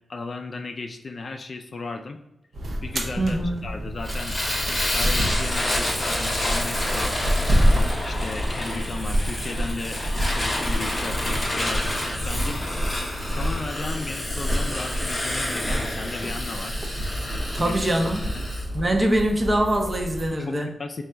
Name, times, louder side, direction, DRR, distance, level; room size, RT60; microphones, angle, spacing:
voice 1, 0.1-2.2 2.8-4.4 4.9-7.1 8.0-10.0 10.3-11.9 12.3-12.6 13.1-16.8 17.6-18.1 18.3-18.5 20.3-21.0, left 3 dB, 45° left, 5 dB, 0.3 m, -35 dB
sound 1, 2.5-20.3, equal, 60° right, 0.6 m, -28 dB
voice 2, 3.2-3.6 17.5-18.2 18.7-20.7, right 1 dB, 25° right, 3 dB, 0.6 m, -23 dB
Fire, 4.0-18.7, left 1 dB, 15° left, 0.7 m, -29 dB
3.8 x 2.3 x 4.3 m, 0.89 s
wide cardioid pair, 140°, 0 cm